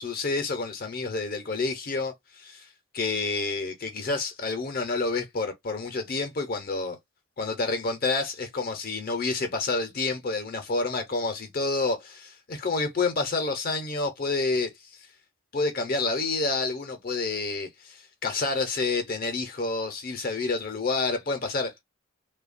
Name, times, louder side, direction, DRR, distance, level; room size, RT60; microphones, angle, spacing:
voice 1, 0.0-2.7 2.9-7.0 7.4-15.1 15.5-21.8, left 3 dB, 45° left, 0.6 m, -29 dB
2.8 x 2.2 x 2.4 m
head